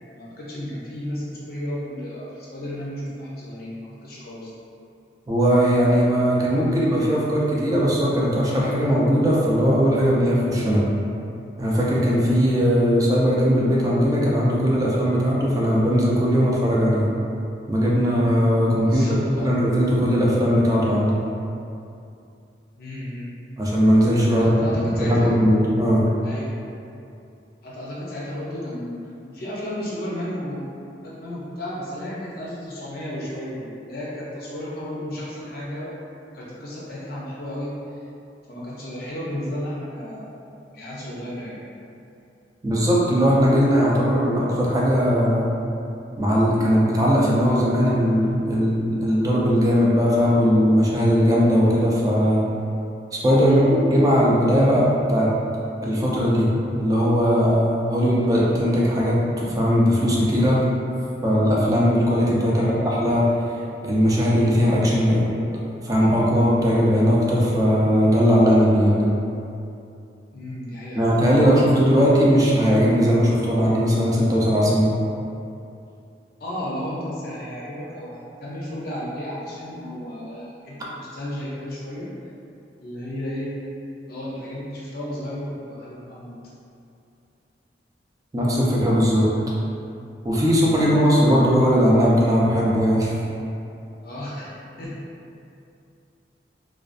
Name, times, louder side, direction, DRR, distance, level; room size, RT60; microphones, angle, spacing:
voice 1, 0.1-4.5 18.8-19.5 22.7-23.3 24.4-25.3 26.2-26.5 27.6-29.0 29.2-30.6 31.0-35.9 36.3-38.0 38.5-40.4 40.7-41.6 53.4-53.8 62.5-62.8 70.3-71.5 76.4-82.1 82.8-83.5 84.1-86.3 94.0-95.0, left 1 dB, 55° left, -6 dB, 0.5 m, -33 dB
voice 2, 5.3-10.9 11.6-17.1 17.7-21.2 23.6-26.0 42.6-45.5 46.2-52.4 53.2-55.3 55.8-60.7 61.2-63.3 63.8-65.2 65.8-69.2 70.9-74.9 88.3-89.3 90.2-93.1, equal, 20° right, -5 dB, 0.3 m, -19 dB
2.4 x 2.2 x 2.4 m, 2.6 s
head